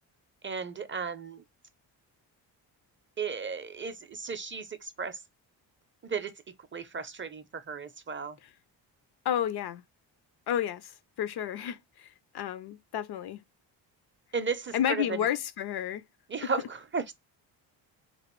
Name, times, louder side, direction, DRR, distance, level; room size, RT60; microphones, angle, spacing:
voice 1, 0.4-1.4 3.2-5.2 6.0-6.3 6.7-8.4 14.3-15.3 16.3-17.1, right 5 dB, 25° right, 0.5 m, -34 dB
voice 2, 9.2-9.8 10.5-13.4 14.7-16.0 16.4-16.5, left 10 dB, 60° left, 0.5 m, -31 dB
3.0 x 2.9 x 2.9 m
supercardioid pair, 60°, 46 cm